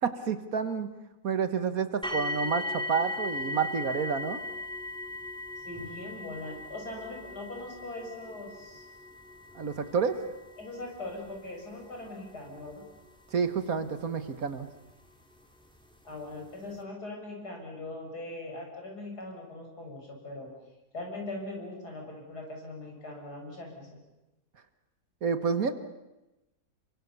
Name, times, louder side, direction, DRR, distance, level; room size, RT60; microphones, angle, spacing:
voice 1, 0.0-0.9 1.2-4.4 9.5-10.2 13.3-14.7 25.2-25.7, right 6 dB, 60° right, 10 dB, 1.9 m, -29 dB
sound 1, 2.0-14.9 15.7-15.8 16.4-16.5, left 2 dB, 5° left, 2.5 m, -39 dB
voice 2, 5.6-8.9 10.6-12.8 16.0-20.5 20.9-24.0, left 2 dB, 75° left, 1 dB, 6.7 m, -41 dB
28.5 x 23.5 x 7.0 m, 0.98 s
omnidirectional pair, 1.7 m